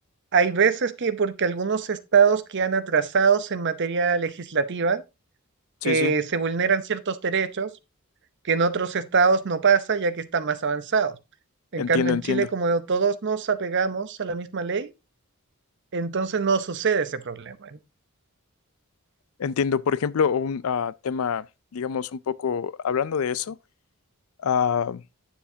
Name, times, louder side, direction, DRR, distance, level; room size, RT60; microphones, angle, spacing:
voice 1, 0.3-5.0 5.8-7.7 8.5-11.1 11.7-14.9 15.9-17.8, right 5 dB, 55° right, 0.7 m, -23 dB
voice 2, 5.8-6.1 11.8-12.5 19.4-21.5 21.7-23.6 24.4-25.0, left 6 dB, 70° left, 0.4 m, -25 dB
9.1 x 7.2 x 2.7 m
head